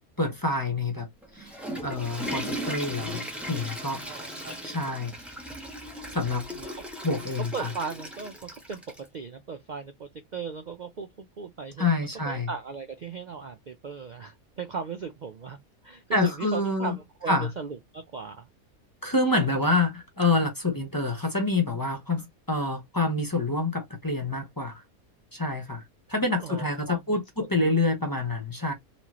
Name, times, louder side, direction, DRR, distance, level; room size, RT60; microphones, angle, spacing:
voice 1, 0.2-1.1 1.3-1.6 1.8-3.2 3.5-4.0 4.6-5.1 6.1-6.4 7.0-7.7 11.8-12.5 16.1-17.0 17.3-17.5 19.0-24.8 25.3-25.8 26.1-28.7, left 2 dB, 20° left, 0.8 m, -27 dB
Water / Toilet flush, 1.2-9.1, equal, ahead, 1.2 m, -37 dB
voice 2, 4.1-4.6 6.5-6.9 7.3-15.6 15.8-18.5 26.4-27.8, right 5 dB, 70° right, 0.4 m, -38 dB
4.3 x 2.8 x 3.0 m
omnidirectional pair, 1.5 m